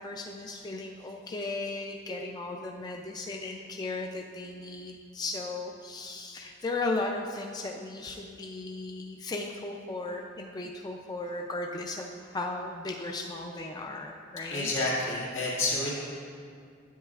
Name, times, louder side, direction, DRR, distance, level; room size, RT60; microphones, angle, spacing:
voice 1, 0.0-14.7, left 2 dB, 20° left, 1 dB, 0.3 m, -36 dB
voice 2, 14.5-15.9, left 2 dB, 80° left, -6 dB, 1.9 m, -29 dB
10.0 x 8.1 x 2.4 m, 2.2 s
head